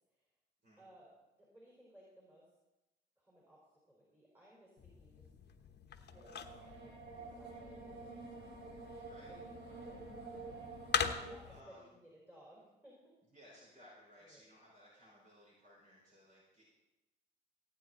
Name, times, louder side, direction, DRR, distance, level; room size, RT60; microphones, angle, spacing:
voice 1, 0.8-1.1 1.4-2.5 3.2-5.3 6.1-8.3 8.6-8.9 9.3-9.5 9.8-13.1 14.2-14.4, equal, 10° right, -4 dB, 4.8 m, -61 dB
sound 1, 4.8-11.6, left 7 dB, 55° left, 1.1 m, -43 dB
sound 2, 6.1-11.3, right 3 dB, 70° right, 3.6 m, -49 dB
voice 2, 11.5-11.9 13.3-16.7, equal, 40° right, -6 dB, 5.6 m, -61 dB
18.0 x 9.1 x 4.2 m, 1.0 s
cardioid pair, 90°, 20 cm